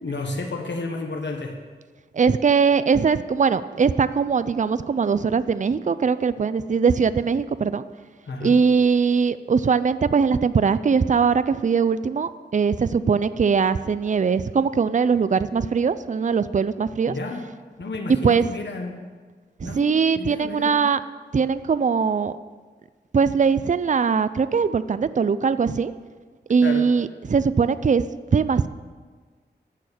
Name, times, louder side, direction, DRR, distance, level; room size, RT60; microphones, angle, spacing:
voice 1, 0.0-1.6 8.3-8.6 17.1-17.5 17.8-19.1 19.6-20.8 26.6-26.9, left 3 dB, 85° left, 3 dB, 1.2 m, -31 dB
voice 2, 2.1-7.8 8.4-17.1 18.1-18.4 19.6-21.0 21.3-22.4 23.1-25.9 26.5-28.7, right 5 dB, 45° right, 14 dB, 0.4 m, -21 dB
10.5 x 7.1 x 8.7 m, 1.5 s
wide cardioid pair, 70°, 18 cm